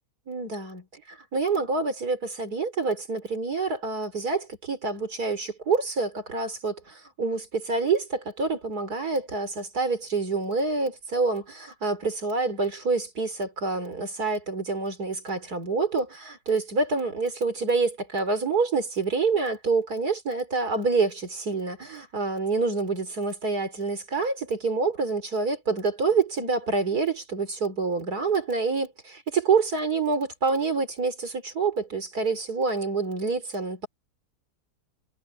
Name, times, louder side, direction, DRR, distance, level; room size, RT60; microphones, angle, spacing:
voice 1, 0.3-33.9, right 4 dB, 60° right, 4.2 m, -27 dB
omnidirectional pair, 1.8 m